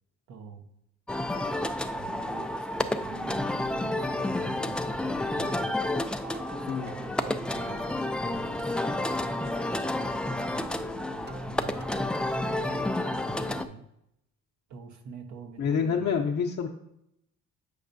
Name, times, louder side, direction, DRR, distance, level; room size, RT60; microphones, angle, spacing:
voice 1, 0.3-0.7 1.8-5.9 6.5-13.9 14.7-16.1, right 5 dB, 70° right, 6 dB, 1.0 m, -46 dB
sound 1, 1.1-13.6, left 1 dB, 5° left, 0.3 m, -30 dB
sound 2, 6.2-8.3 8.6-12.8, right 2 dB, 35° right, 0.6 m, -44 dB
voice 2, 15.6-16.7, left 6 dB, 55° left, -1 dB, 0.7 m, -27 dB
8.3 x 5.3 x 2.6 m, 0.80 s
cardioid pair, 90°, 30 cm